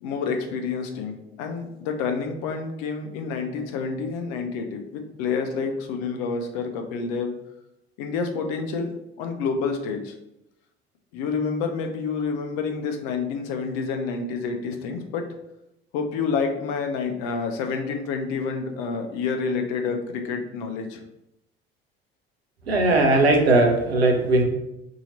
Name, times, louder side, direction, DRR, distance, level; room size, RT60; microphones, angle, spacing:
voice 1, 0.0-7.3 8.0-10.2 11.1-15.2 15.9-21.0, left 5 dB, 60° left, 4 dB, 0.6 m, -28 dB
voice 2, 22.7-24.4, right 2 dB, 85° right, 2 dB, 0.6 m, -18 dB
2.8 x 2.8 x 3.9 m, 0.85 s
figure-of-eight pair, 60°, 30 cm